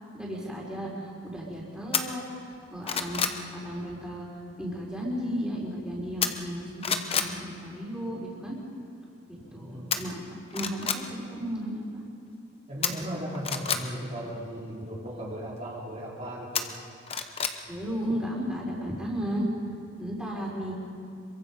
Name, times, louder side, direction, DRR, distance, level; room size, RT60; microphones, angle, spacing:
voice 1, 0.1-2.2 2.7-4.3 4.6-8.6 9.3-12.0 17.7-19.5 20.0-20.7, equal, 5° right, -5 dB, 4.5 m, -34 dB
sound 1, 1.9-2.0 2.5-3.4 6.2-6.6 6.8-7.3 9.9-10.0 10.5-11.0 12.8-13.8 16.5-17.6 17.9-18.0, left 6 dB, 30° left, 1.0 m, -28 dB
voice 2, 9.4-9.9 12.7-16.7, equal, 35° right, -5 dB, 3.1 m, -36 dB
26.5 x 23.5 x 5.4 m, 2.4 s
head